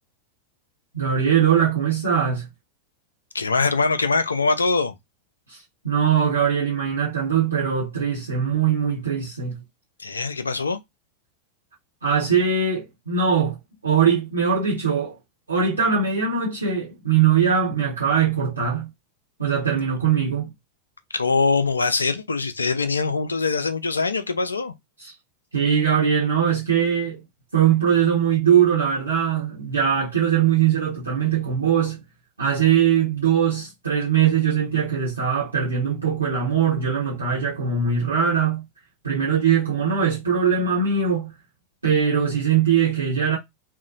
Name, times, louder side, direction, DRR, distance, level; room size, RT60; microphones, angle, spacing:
voice 1, 0.9-2.5 5.5-9.6 12.0-13.6 13.8-15.2 15.5-18.9 19.4-20.5 25.0-25.1 25.5-27.2 27.5-32.0 32.4-38.6 39.0-41.3 41.8-43.4, right 7 dB, 80° right, 0.9 m, -21 dB
voice 2, 3.3-4.9 10.0-10.8 21.1-24.7, left 4 dB, 75° left, 0.4 m, -23 dB
2.7 x 2.1 x 2.5 m
figure-of-eight pair, 90°, 0 cm